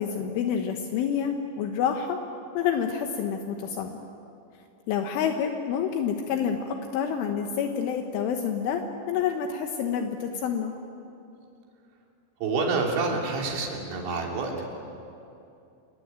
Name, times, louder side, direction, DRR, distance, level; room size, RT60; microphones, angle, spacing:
voice 1, 0.0-2.2 2.6-4.0 4.9-10.8, left 7 dB, 75° left, 4 dB, 3.5 m, -28 dB
voice 2, 12.4-14.7, right 4 dB, 65° right, 0 dB, 5.4 m, -28 dB
29.0 x 21.0 x 8.9 m, 2.7 s
omnidirectional pair, 5.8 m